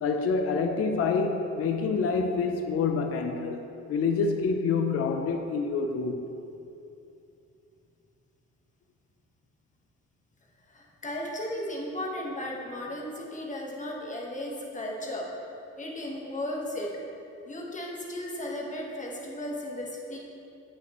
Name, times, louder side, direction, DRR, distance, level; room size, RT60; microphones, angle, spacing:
voice 1, 0.0-3.6 3.9-6.2, left 4 dB, 50° left, 5 dB, 0.6 m, -27 dB
voice 2, 10.7-15.3 15.8-16.9 17.5-20.2, left 1 dB, 25° left, -2 dB, 1.3 m, -35 dB
7.6 x 6.4 x 3.0 m, 2.7 s
cardioid pair, 90°, 30 cm